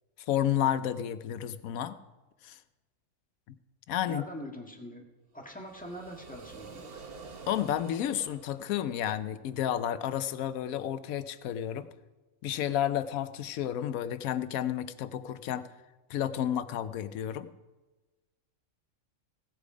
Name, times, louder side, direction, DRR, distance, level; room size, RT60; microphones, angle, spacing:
voice 1, 0.3-2.0 2.4-2.6 3.9-4.2 7.5-11.9 12.4-15.7 16.1-17.5, left 10 dB, 80° left, 13 dB, 1.1 m, -31 dB
voice 2, 4.1-5.0 5.3-6.8, equal, 5° left, 1 dB, 1.5 m, -42 dB
sound 1, 5.4-9.4, right 4 dB, 45° right, 1.3 m, -48 dB
16.5 x 8.3 x 5.1 m, 1.2 s
omnidirectional pair, 1.5 m